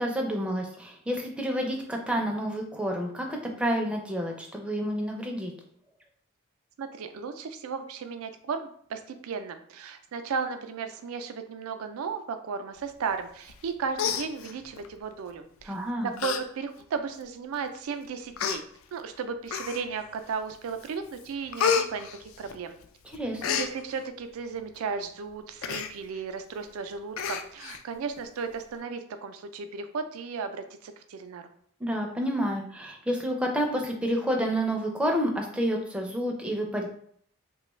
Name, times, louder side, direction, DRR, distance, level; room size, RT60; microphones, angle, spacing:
voice 1, 0.0-5.5 15.7-16.1 23.0-23.6 31.8-36.9, equal, 5° right, 1 dB, 0.4 m, -29 dB
voice 2, 6.8-15.7 16.0-18.6 18.9-22.8 23.5-31.5, right 5 dB, 80° right, 8 dB, 0.4 m, -35 dB
Human voice, 13.5-13.7 13.9-14.9 15.6-15.8 16.2-16.4 16.8-16.9 17.7-17.8 18.4-18.6 19.5-20.0 20.5-20.9 21.1-22.8 23.1-23.7 25.6-25.9 26.3-26.4 26.7-26.8 27.2-27.8 28.2-28.3, left 7 dB, 70° left, 0.3 m, -30 dB
3.2 x 2.2 x 3.0 m, 0.63 s
head